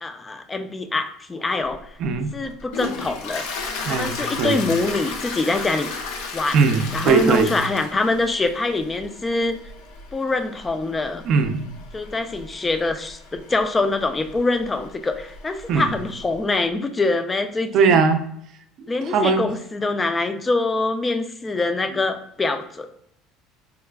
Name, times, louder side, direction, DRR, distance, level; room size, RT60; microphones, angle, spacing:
voice 1, 0.0-1.8 2.3-3.5 3.8-5.9 6.3-9.6 10.1-11.2 11.9-18.0 18.9-22.9, left 3 dB, 15° left, 9 dB, 0.3 m, -24 dB
Toilet flush, 1.7-16.4, left 4 dB, 80° left, 0.5 m, -35 dB
voice 2, 2.0-2.3 3.8-4.7 6.5-7.6 11.2-11.7 15.7-15.9 17.7-18.2 19.0-19.5, right 5 dB, 55° right, 7 dB, 0.4 m, -19 dB
4.7 x 2.3 x 2.3 m, 0.71 s
cardioid pair, 130°, 0 cm